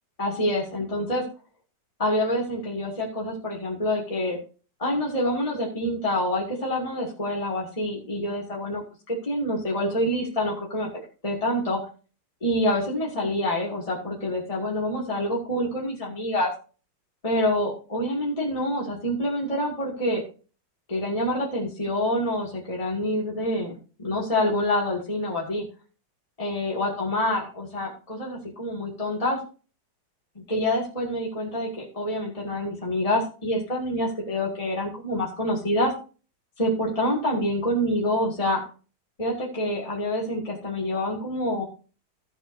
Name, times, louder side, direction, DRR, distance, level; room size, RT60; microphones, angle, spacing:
voice 1, 0.2-1.2 2.0-4.4 4.8-10.9 11.2-11.8 12.4-16.5 17.2-20.2 20.9-25.6 26.4-29.4 30.5-35.9 36.6-38.6 39.2-41.6, left 1 dB, 20° left, -4 dB, 2.2 m, -27 dB
15.0 x 8.0 x 2.7 m, 0.36 s
omnidirectional pair, 2.0 m